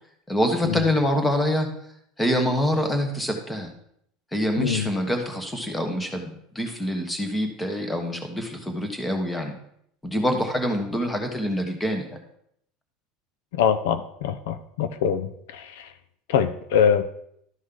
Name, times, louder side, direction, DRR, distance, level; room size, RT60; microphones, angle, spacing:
voice 1, 0.3-1.7 2.2-3.7 4.3-9.6 10.0-12.1, equal, 5° left, 4 dB, 1.3 m, -25 dB
voice 2, 4.6-4.9 13.5-15.9 16.3-17.0, left 8 dB, 90° left, 11 dB, 0.7 m, -23 dB
12.5 x 5.2 x 3.9 m, 0.72 s
supercardioid pair, 155°, 0 cm